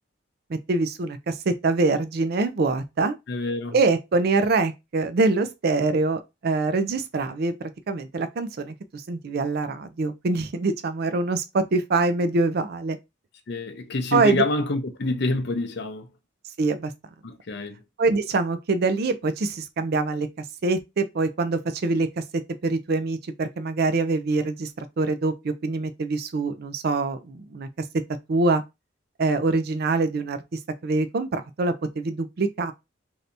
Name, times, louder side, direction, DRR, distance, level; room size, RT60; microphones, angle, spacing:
voice 1, 0.5-3.2 3.7-7.5 7.9-13.0 14.1-14.4 16.6-16.9 18.0-20.3 20.6-22.2 22.6-27.7 28.3-28.6 29.2-32.7, right 3 dB, 55° right, 0.4 m, -24 dB
voice 2, 3.3-3.8 13.5-16.1 17.2-17.8, left 3 dB, 60° left, 0.6 m, -27 dB
3.3 x 2.7 x 2.6 m
head